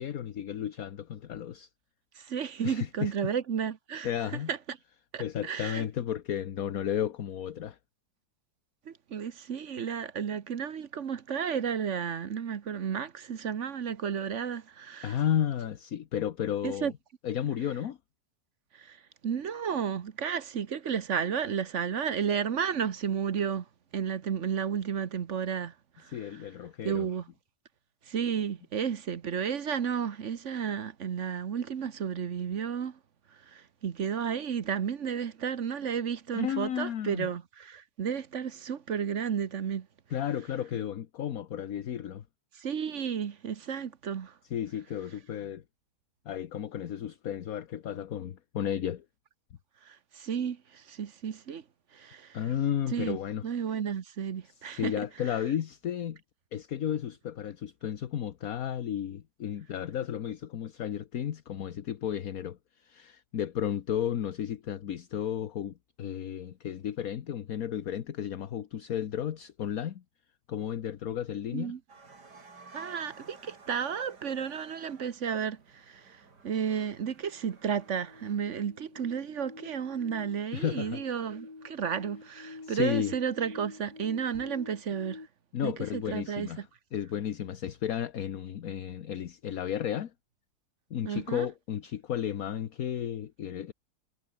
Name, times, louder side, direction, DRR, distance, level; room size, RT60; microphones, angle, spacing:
voice 1, 0.0-1.7 2.6-3.1 4.0-4.5 5.2-7.8 15.0-16.9 17.2-18.0 26.1-27.1 36.3-37.3 40.1-42.2 44.5-45.6 46.2-49.0 52.3-53.5 54.7-56.2 56.5-70.0 70.5-71.7 80.5-81.0 82.6-83.1 85.5-86.7 86.9-90.1 90.9-93.7, left 9 dB, 60° left, 1.4 m, -33 dB
voice 2, 2.2-4.1 4.5-4.8 5.1-5.9 8.9-15.2 16.6-16.9 18.7-19.0 19.2-23.6 23.9-26.1 26.8-27.3 28.1-33.0 33.5-39.9 42.6-44.3 49.8-51.6 51.9-52.4 52.9-53.2 53.4-54.9 71.5-71.8 72.7-85.2 85.6-86.5 91.0-91.5, right 7 dB, 50° right, 1.3 m, -32 dB
sound 1, 71.9-78.4, right 4 dB, 90° right, 4.2 m, -53 dB
sound 2, 77.2-85.3, left 3 dB, 20° left, 0.7 m, -48 dB
omnidirectional pair, 1.8 m